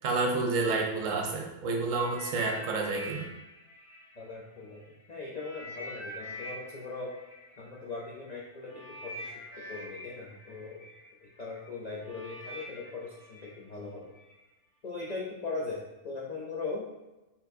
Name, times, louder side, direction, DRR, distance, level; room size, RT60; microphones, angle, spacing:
voice 1, 0.0-3.2, right 3 dB, 70° right, 1 dB, 1.0 m, -29 dB
sound 1, 1.9-4.9 5.3-14.3 15.0-15.2, left 1 dB, 85° left, 1.5 m, -45 dB
voice 2, 4.2-4.8 5.1-7.1 7.6-9.3 9.7-10.9 11.2-14.1 14.8-16.9, left 3 dB, 65° left, -4 dB, 0.4 m, -39 dB
4.3 x 3.6 x 2.6 m, 1.0 s
omnidirectional pair, 1.5 m